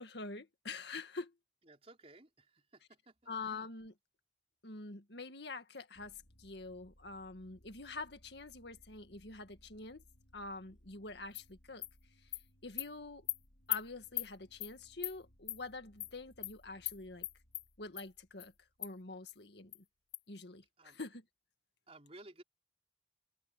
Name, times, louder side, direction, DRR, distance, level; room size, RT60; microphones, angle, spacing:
voice 1, 0.0-1.3 3.3-3.9 4.6-10.0 10.3-11.8 12.6-13.3 13.7-17.3 17.8-18.5 18.8-19.8 20.3-21.2, left 3 dB, 70° left, 1.9 m, -46 dB
voice 2, 1.6-3.3 20.8-21.0 21.9-22.4, right 2 dB, 35° right, 4.5 m, -57 dB
sound 1, 5.9-19.4, equal, 90° left, 3.6 m, -66 dB
Animal, 11.3-11.4 11.8-11.9 12.3-12.4 12.8-12.9 13.3-13.4 13.7-13.8 14.2-14.3 14.6-14.7 15.0-15.1 15.5-15.6 16.0-16.1 16.4-16.5 16.9-17.0 17.2-17.6 18.0-18.1 18.4-18.5 18.8-18.9 19.3-19.4 19.7-19.8 20.1-20.2, left 15 dB, 35° left, 0.3 m, -38 dB
head